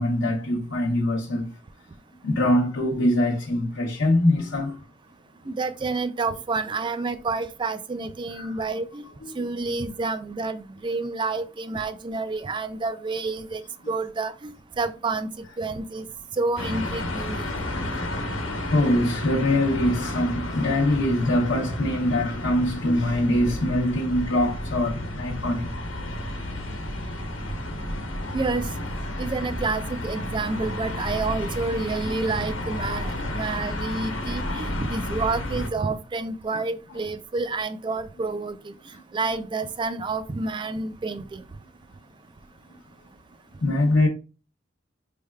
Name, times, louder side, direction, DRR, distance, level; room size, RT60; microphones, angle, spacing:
voice 1, 0.0-1.6 2.2-4.8 8.3-8.6 9.2-9.4 18.6-25.7 33.2-33.4 36.5-36.6 43.6-44.1, left 1 dB, 70° left, 0.8 m, -23 dB
voice 2, 5.5-9.0 9.4-14.5 14.8-16.1 16.4-17.4 17.8-18.0 28.3-28.7 29.2-38.7 39.1-41.4, right 3 dB, 25° right, 0.3 m, -29 dB
sound 1, 16.6-35.7, left 1 dB, 85° left, 1.0 m, -31 dB
5.3 x 3.3 x 2.3 m
head